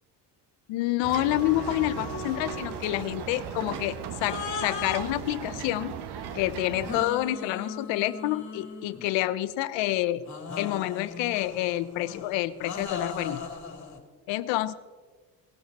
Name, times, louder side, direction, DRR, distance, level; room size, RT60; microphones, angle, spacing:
voice 1, 0.7-6.0 6.3-10.2 10.6-13.5 14.3-14.7, left 15 dB, 85° left, 15 dB, 0.8 m, -28 dB
sound 1, 1.0-7.1, right 7 dB, 65° right, 1.3 m, -37 dB
sound 2, 1.3-3.0 4.2-6.0 6.8-9.3 10.3-14.0, left 5 dB, 40° left, 2.7 m, -38 dB
18.5 x 12.0 x 4.1 m, 1.4 s
supercardioid pair, 75°, 43 cm